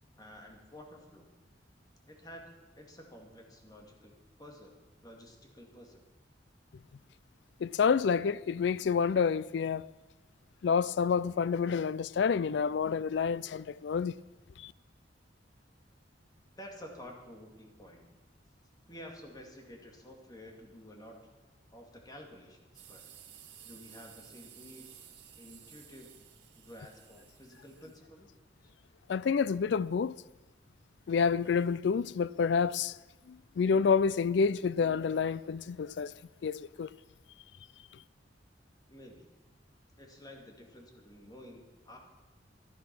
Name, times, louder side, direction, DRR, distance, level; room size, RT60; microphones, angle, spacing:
voice 1, 0.2-1.3 2.1-2.5 2.8-4.1 4.4-4.7 5.0-6.0 16.6-18.0 18.9-21.2 21.7-23.0 23.6-24.9 25.4-26.1 26.5-28.3 28.6-28.7 38.9-39.3 40.0-42.0, equal, 20° left, 2.4 m, -51 dB
voice 2, 7.6-9.9 10.6-14.1 14.6-14.7 29.1-30.1 31.1-33.0 33.3-36.1 36.4-36.9, left 6 dB, 70° left, 0.4 m, -28 dB
sound 1, 22.7-28.0, right 9 dB, 65° right, 1.9 m, -55 dB
15.0 x 11.0 x 6.1 m
head